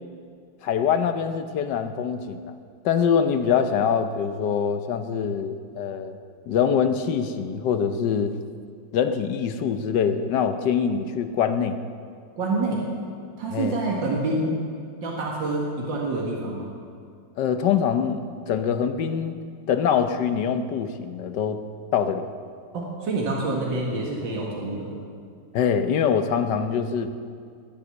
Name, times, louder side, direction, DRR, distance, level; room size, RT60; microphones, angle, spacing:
voice 1, 0.6-2.5 2.8-6.2 6.5-8.3 8.9-11.8 13.5-13.8 17.4-19.4 19.7-21.6 21.9-22.3 25.5-27.1, left 7 dB, 70° left, 9 dB, 1.4 m, -24 dB
voice 2, 12.4-12.8 13.4-14.6 15.0-16.7 22.7-24.9, right 2 dB, 80° right, -3 dB, 2.5 m, -27 dB
20.5 x 8.1 x 7.0 m, 2.2 s
omnidirectional pair, 2.0 m